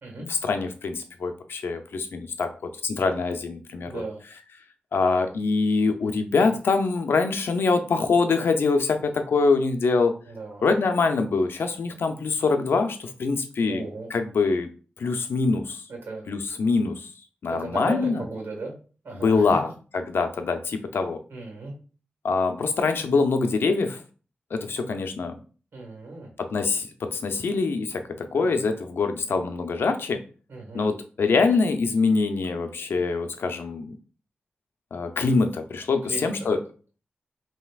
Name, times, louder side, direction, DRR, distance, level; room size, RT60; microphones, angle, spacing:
voice 1, 0.3-4.0 4.9-10.1 10.6-13.8 14.1-14.7 15.0-15.8 16.3-17.1 17.4-18.2 19.1-19.7 20.1-21.2 22.2-24.0 24.5-25.4 26.4-30.2 30.7-33.9 34.9-36.6, left 4 dB, 85° left, 7 dB, 0.6 m, -24 dB
voice 2, 3.8-4.2 6.3-6.6 10.3-10.7 13.7-14.1 15.9-16.2 17.6-18.7 19.0-19.6 21.3-21.7 25.7-26.3 28.3-28.5 30.5-30.8 36.0-36.6, right 3 dB, 85° right, 1 dB, 1.5 m, -36 dB
5.6 x 2.9 x 2.4 m, 0.38 s
cardioid pair, 65°, 4 cm